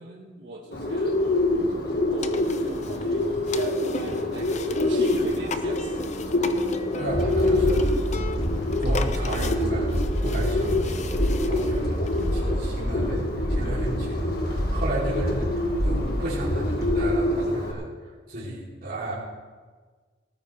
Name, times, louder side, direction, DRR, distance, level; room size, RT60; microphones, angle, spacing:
voice 1, 0.0-6.1 19.0-19.1, right 2 dB, 70° right, -4 dB, 1.6 m, -39 dB
Bird, 0.7-17.7, left 1 dB, 60° left, 1.7 m, -27 dB
sound 1, 2.2-12.3, left 3 dB, 40° left, 0.7 m, -37 dB
voice 2, 7.0-8.0 8.8-9.9 10.2-12.0 12.3-17.9 18.3-19.1, right 1 dB, 55° right, -8 dB, 3.2 m, -33 dB
sound 2, 7.1-16.9, equal, 85° left, 4.1 m, -28 dB
18.5 x 14.0 x 3.4 m, 1.4 s
head